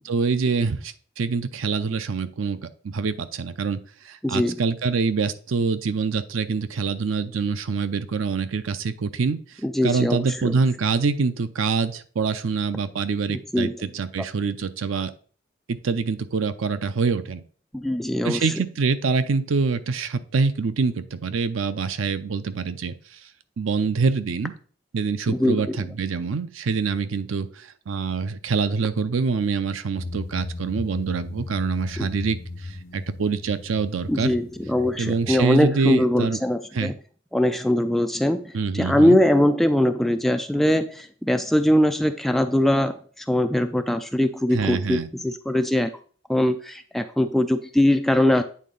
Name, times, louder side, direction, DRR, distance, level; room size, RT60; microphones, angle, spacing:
voice 1, 0.1-15.1 15.7-17.4 18.2-23.2 23.6-24.5 24.9-34.3 35.0-36.4 36.7-36.9 38.5-39.2 44.5-45.1, right 4 dB, 85° right, 12 dB, 0.5 m, -25 dB
voice 2, 4.2-4.6 9.6-10.6 13.5-13.9 17.7-18.5 25.3-25.9 32.0-32.1 34.1-36.9 37.3-45.9 46.3-48.4, left 1 dB, ahead, 7 dB, 0.3 m, -22 dB
sound 1, 30.0-35.4, left 2 dB, 45° left, 0.6 m, -36 dB
8.5 x 3.6 x 3.9 m, 0.43 s
head